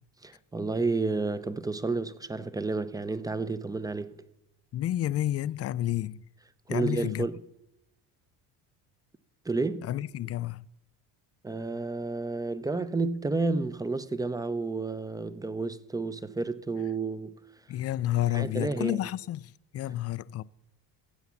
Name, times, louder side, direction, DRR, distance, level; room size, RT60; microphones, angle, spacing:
voice 1, 0.2-4.1 6.7-7.4 9.4-9.9 11.4-17.4 18.3-19.0, right 3 dB, 10° right, 0.6 m, -31 dB
voice 2, 4.7-6.2 6.7-7.3 9.8-10.7 17.7-20.4, left 13 dB, 35° left, 0.4 m, -30 dB
15.5 x 8.0 x 7.1 m
cardioid pair, 110°, 43 cm